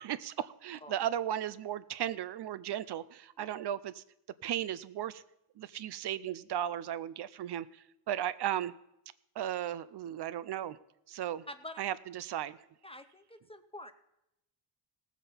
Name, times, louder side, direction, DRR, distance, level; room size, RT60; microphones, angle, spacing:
voice 1, 0.0-4.0 4.4-5.2 5.6-8.7 9.4-10.8 11.1-11.4 11.8-12.6, right 11 dB, 65° right, 16 dB, 0.5 m, -36 dB
voice 2, 11.5-11.8 12.8-13.9, left 1 dB, 15° left, 10 dB, 0.5 m, -46 dB
18.0 x 7.4 x 5.5 m, 0.83 s
wide cardioid pair, 165°, 45 cm